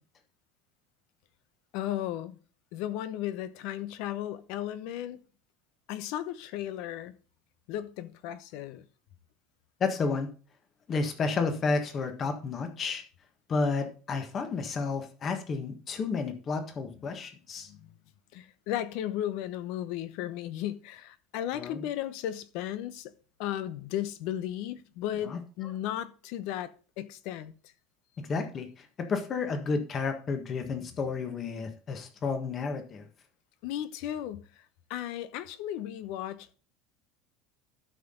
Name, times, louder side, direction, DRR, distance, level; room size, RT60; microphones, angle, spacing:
voice 1, 1.7-2.4 2.7-5.2 5.9-7.1 7.7-8.8 17.7-17.9 18.3-23.1 23.4-27.5 33.6-34.6 34.9-36.6, left 12 dB, 60° left, 0.9 m, -35 dB
voice 2, 9.8-10.3 10.9-13.0 13.5-17.7 21.5-21.8 25.2-25.4 28.2-33.0, left 4 dB, 25° left, 1.5 m, -31 dB
12.5 x 6.0 x 3.8 m
cardioid pair, 160°, 0 cm